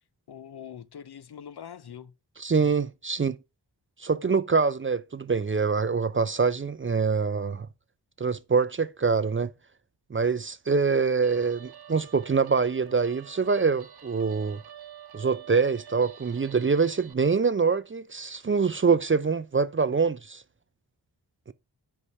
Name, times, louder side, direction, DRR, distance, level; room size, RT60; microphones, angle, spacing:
voice 1, 0.3-2.1 2.5-2.7, left 8 dB, 60° left, 0.7 m, -43 dB
voice 2, 2.4-3.4 4.0-7.7 8.2-9.5 10.1-14.6 15.1-20.4, right 5 dB, 30° right, 0.5 m, -25 dB
Guitar, 11.2-17.1, right 9 dB, 60° right, 0.9 m, -48 dB
5.5 x 4.8 x 5.3 m
cardioid pair, 40°, 44 cm